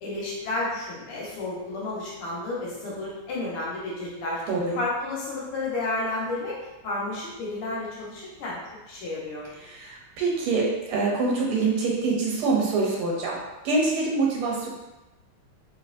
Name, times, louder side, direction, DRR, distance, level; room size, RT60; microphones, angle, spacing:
voice 1, 0.0-4.4 4.8-6.6 6.8-8.6 8.9-9.4, left 2 dB, 80° left, -5 dB, 1.9 m, -31 dB
voice 2, 4.5-4.8 9.6-13.4 13.6-14.7, right 3 dB, 80° right, -2 dB, 1.7 m, -25 dB
3.9 x 3.1 x 2.5 m, 1.0 s
omnidirectional pair, 2.4 m